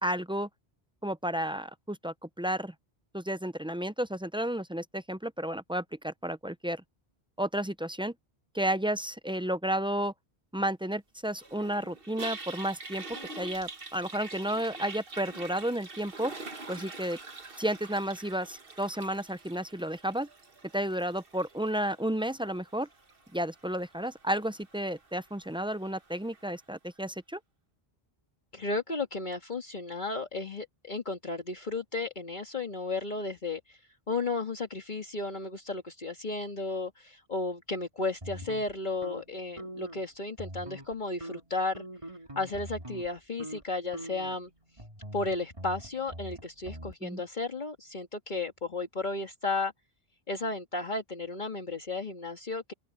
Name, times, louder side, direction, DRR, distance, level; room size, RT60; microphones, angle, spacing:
voice 1, 0.0-0.5 1.0-2.7 3.1-6.8 7.4-8.1 8.5-10.1 10.5-13.0 13.4-16.3 16.7-17.2 17.6-20.3 20.7-22.9 23.3-27.4 47.0-47.2, right 1 dB, 10° right, 0.4 m, -32 dB
Toilet flush, 11.4-26.6, right 3 dB, 65° right, 1.9 m, -46 dB
voice 2, 28.5-33.8 34.1-41.8 42.4-44.5 45.1-49.7 50.3-52.7, left 3 dB, 50° left, 2.0 m, -34 dB
sound 1, 38.2-40.1 40.3-40.9 41.2-43.1 43.4-43.6 43.9-46.9, right 1 dB, 30° right, 3.9 m, -44 dB
open air
omnidirectional pair, 1.0 m